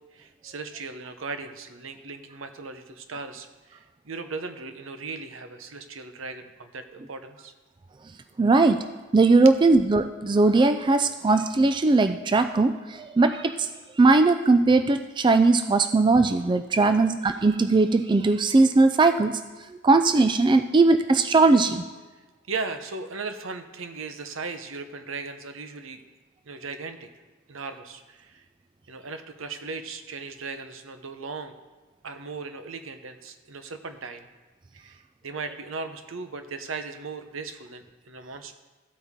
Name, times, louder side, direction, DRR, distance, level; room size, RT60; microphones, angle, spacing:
voice 1, 0.1-7.5 16.8-17.2 22.5-26.0 26.5-27.1 27.5-28.5 28.9-31.5 32.0-34.3 34.7-38.5, right 4 dB, 75° right, 8 dB, 0.9 m, -37 dB
voice 2, 8.4-8.8 9.1-13.7 14.0-19.4 19.8-21.9, right 3 dB, 25° right, 9 dB, 0.3 m, -19 dB
14.5 x 8.2 x 3.7 m, 1.2 s
head